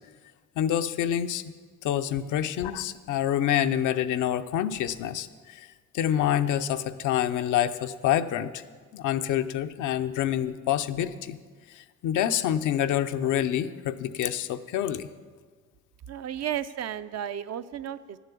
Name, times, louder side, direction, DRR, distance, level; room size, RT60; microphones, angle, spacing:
voice 1, 0.6-1.4 1.8-5.7 5.9-8.6 8.9-11.4 11.7-15.1, left 11 dB, 85° left, 10 dB, 0.6 m, -27 dB
voice 2, 16.1-18.2, right 10 dB, 60° right, 12 dB, 0.6 m, -33 dB
10.5 x 7.1 x 8.4 m, 1.5 s
cardioid pair, 90°, 30 cm